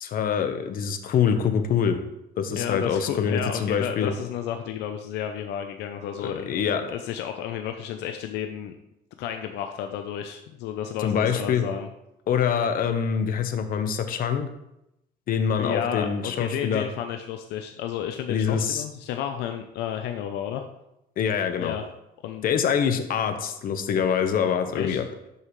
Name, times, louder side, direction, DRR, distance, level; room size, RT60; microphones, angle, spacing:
voice 1, 0.0-2.0 2.4-4.1 6.2-6.8 11.0-11.6 12.3-14.5 15.3-16.8 18.3-18.8 21.2-21.7 22.4-25.0, left 7 dB, 55° left, 8 dB, 1.0 m, -25 dB
voice 2, 2.5-6.5 6.8-8.8 9.2-11.9 15.6-20.6 21.6-21.9 22.2-22.4 24.7-25.0, left 9 dB, 85° left, 6 dB, 0.6 m, -32 dB
12.5 x 5.6 x 3.2 m, 0.85 s
cardioid pair, 110°, 17 cm